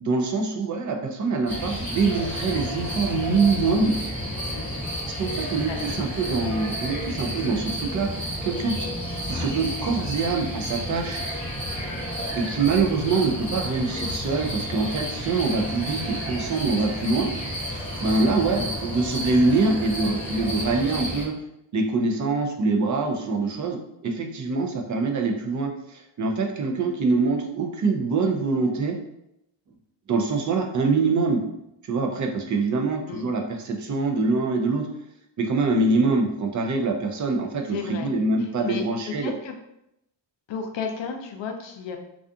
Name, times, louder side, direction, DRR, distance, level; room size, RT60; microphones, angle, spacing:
voice 1, 0.0-3.9 5.2-8.9 9.3-11.2 12.3-17.3 18.0-21.3 21.7-29.0 30.1-31.4 31.8-34.9 35.4-39.3, right 3 dB, 45° right, 3 dB, 0.4 m, -24 dB
sound 1, 1.5-21.2, equal, 5° left, 1.0 m, -31 dB
voice 2, 5.7-6.0 18.5-18.8 33.1-33.2 37.7-38.1 38.4-38.8 39.2-39.5 40.5-42.0, left 6 dB, 70° left, 4 dB, 0.5 m, -33 dB
2.4 x 2.4 x 2.6 m, 0.80 s
wide cardioid pair, 140°, 46 cm